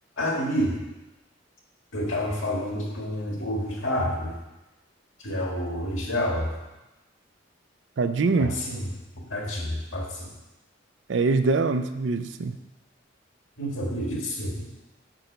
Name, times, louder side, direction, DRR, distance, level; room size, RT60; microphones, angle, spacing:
voice 1, 0.2-0.8 1.9-4.4 5.2-6.6 8.4-8.9 9.2-10.3 13.6-14.7, equal, 85° left, -1 dB, 1.8 m, -29 dB
voice 2, 8.0-8.5 11.1-12.6, right 3 dB, 65° right, 10 dB, 0.4 m, -23 dB
6.2 x 5.6 x 5.1 m, 1.0 s
head